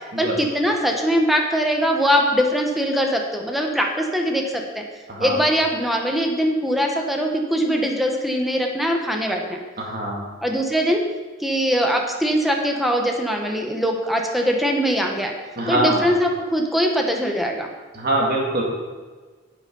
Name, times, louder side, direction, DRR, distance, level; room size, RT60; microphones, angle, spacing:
voice 1, 0.2-4.8 5.2-9.6 10.4-11.0 11.4-15.3 15.7-17.7, equal, ahead, 1 dB, 1.3 m, -21 dB
voice 2, 9.8-10.3 15.6-16.1 17.9-18.6, right 1 dB, 50° right, -1 dB, 2.5 m, -23 dB
9.9 x 8.0 x 5.6 m, 1.4 s
head